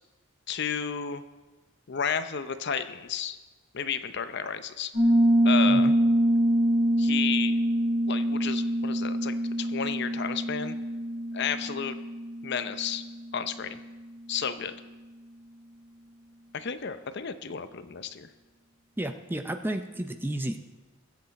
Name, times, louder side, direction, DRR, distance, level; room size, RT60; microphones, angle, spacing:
voice 1, 0.5-1.2 1.9-3.4 3.7-4.9 5.4-5.9 7.0-7.6 8.1-10.8 11.3-12.0 12.4-13.0 13.3-13.8 14.3-14.8 16.5-18.3, left 7 dB, 55° left, 11 dB, 0.6 m, -32 dB
Piano, 4.9-13.5, right 1 dB, 70° right, 4.0 m, -25 dB
voice 2, 19.0-20.6, right 1 dB, 10° right, 7 dB, 0.6 m, -32 dB
22.0 x 8.0 x 4.2 m, 1.2 s
head